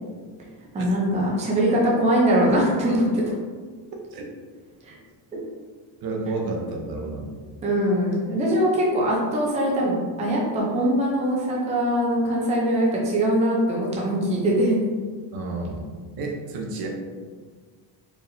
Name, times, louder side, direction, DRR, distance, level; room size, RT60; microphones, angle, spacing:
voice 1, 0.7-3.3 4.8-5.0 5.3-5.4 7.6-14.7, equal, 15° right, -4 dB, 0.5 m, -22 dB
voice 2, 6.0-7.2 15.3-16.9, right 3 dB, 55° right, 0 dB, 0.7 m, -30 dB
4.7 x 3.4 x 2.6 m, 1.5 s
cardioid pair, 175°, 44 cm